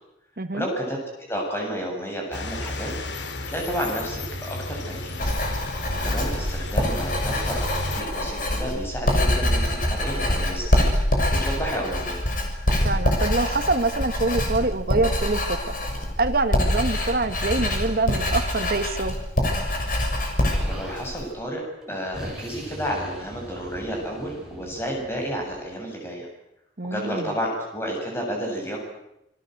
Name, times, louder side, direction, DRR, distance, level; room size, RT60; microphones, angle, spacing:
voice 1, 0.5-1.0 1.3-2.9 3.5-5.3 6.0-12.2 20.5-21.6 21.9-26.3 26.9-28.8, equal, 15° left, 0 dB, 7.5 m, -31 dB
sound 1, 2.3-8.0, left 2 dB, 75° left, 2.3 m, -33 dB
Writing, 5.2-21.3, left 1 dB, 45° left, 6.6 m, -25 dB
voice 2, 12.8-15.4 16.2-19.2 26.8-27.3, right 2 dB, 55° right, 6 dB, 1.5 m, -25 dB
Explosion, 20.4-21.0 21.8-25.7, right 1 dB, 5° right, 7.5 m, -40 dB
27.5 x 21.5 x 8.0 m, 0.85 s
head